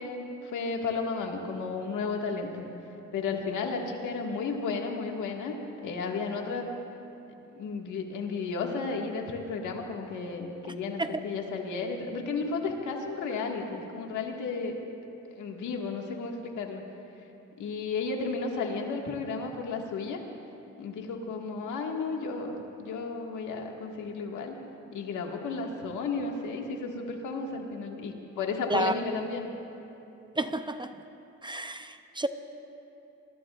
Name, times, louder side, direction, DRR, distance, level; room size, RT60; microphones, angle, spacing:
voice 1, 0.0-2.6 3.1-5.5 5.8-6.7 7.5-14.8 15.4-16.8 17.6-20.2 20.8-24.6 24.9-29.5, left 4 dB, 80° left, 1 dB, 1.9 m, -33 dB
voice 2, 30.4-30.9 31.4-32.3, right 2 dB, 15° right, 9 dB, 0.6 m, -30 dB
26.5 x 21.5 x 2.5 m, 2.9 s
cardioid pair, 90°, 30 cm